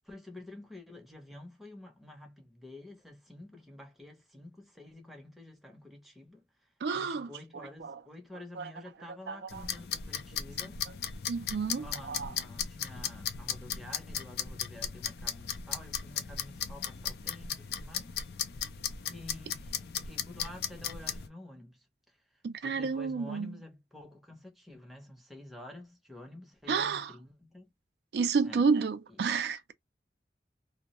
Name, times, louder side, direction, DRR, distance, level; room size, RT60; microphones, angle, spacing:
voice 1, 0.0-10.8 11.7-18.1 19.1-22.2 22.6-27.7 28.4-28.7 29.1-29.2, left 1 dB, ahead, 0.6 m, -49 dB
voice 2, 6.8-8.0 8.6-8.7 9.3-9.7 11.3-12.4 22.4-23.6 26.7-27.1 28.1-29.7, right 5 dB, 70° right, 0.4 m, -31 dB
sound 1, 9.5-21.3, left 8 dB, 65° left, 0.4 m, -37 dB
2.2 x 2.0 x 2.9 m
head